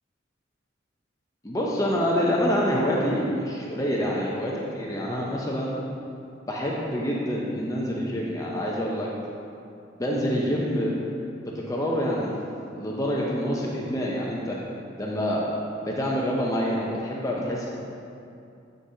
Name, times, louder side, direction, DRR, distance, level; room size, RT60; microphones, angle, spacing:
voice 1, 1.4-5.7 6.5-9.1 10.0-10.9 11.4-12.3 12.7-14.6 15.0-15.4 15.9-17.7, equal, 20° left, -3 dB, 0.6 m, -26 dB
7.8 x 6.5 x 2.8 m, 2.6 s
head